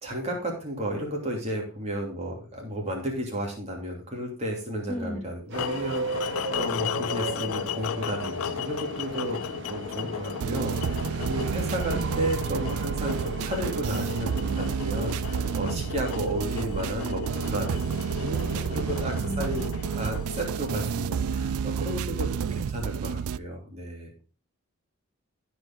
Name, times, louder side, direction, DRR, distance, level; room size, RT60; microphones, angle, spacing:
voice 1, 0.0-24.1, right 1 dB, 30° right, 0 dB, 3.0 m, -33 dB
voice 2, 4.9-5.3 11.9-12.2 19.2-19.7, left 1 dB, 5° left, 3 dB, 0.8 m, -35 dB
sound 1, 5.5-21.6, left 9 dB, 70° left, 0.3 m, -36 dB
sound 2, 5.5-14.8, right 3 dB, 55° right, 0.8 m, -37 dB
sound 3, 10.4-23.4, right 7 dB, 80° right, 0.3 m, -30 dB
15.5 x 5.2 x 3.8 m, 0.35 s
head